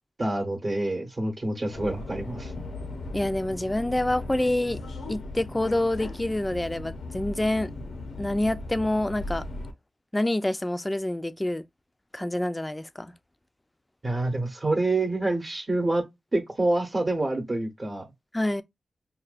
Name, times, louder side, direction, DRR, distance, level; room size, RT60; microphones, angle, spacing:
voice 1, 0.2-2.5 14.0-16.0 16.3-18.1, right 2 dB, 35° right, 0.9 m, -27 dB
Subway metro underground, 1.7-9.7, left 2 dB, 85° left, 0.6 m, -37 dB
voice 2, 3.1-4.8 5.1-9.4 10.1-11.6 12.1-13.1 18.3-18.6, left 1 dB, 15° left, 0.4 m, -27 dB
5.4 x 2.2 x 2.4 m
cardioid pair, 65°, 0 cm